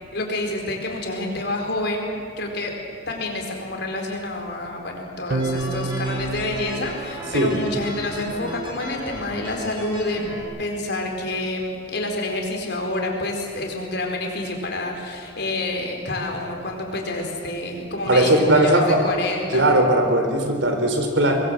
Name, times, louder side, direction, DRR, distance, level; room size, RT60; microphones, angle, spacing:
voice 1, 0.1-2.7 3.1-10.3 10.6-19.7, left 2 dB, 60° left, 2 dB, 4.6 m, -28 dB
sound 1, 5.3-7.9, right 3 dB, 55° right, 1.0 m, -29 dB
sound 2, 5.4-10.4, equal, 25° right, 6.7 m, -36 dB
voice 2, 18.1-19.0 19.5-21.3, right 1 dB, 80° right, 5 dB, 3.8 m, -18 dB
24.0 x 21.5 x 7.8 m, 2.2 s
head